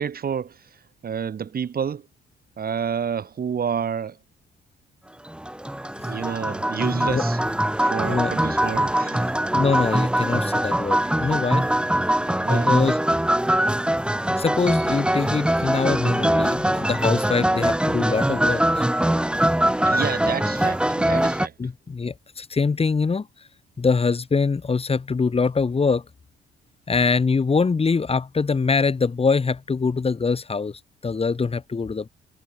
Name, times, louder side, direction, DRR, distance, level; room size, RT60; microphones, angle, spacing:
voice 1, 0.0-2.1 2.6-4.2 6.1-7.4 7.8-9.3 12.4-12.7 19.9-21.5, right 7 dB, 50° right, 3.0 m, -29 dB
sound 1, 5.3-21.5, right 1 dB, 5° right, 3.1 m, -22 dB
voice 2, 6.9-7.2 8.1-8.3 9.5-11.7 12.5-13.0 14.3-18.8 21.6-23.3 23.8-26.0 26.9-32.1, left 4 dB, 30° left, 2.3 m, -23 dB
cardioid pair, 90°, 20 cm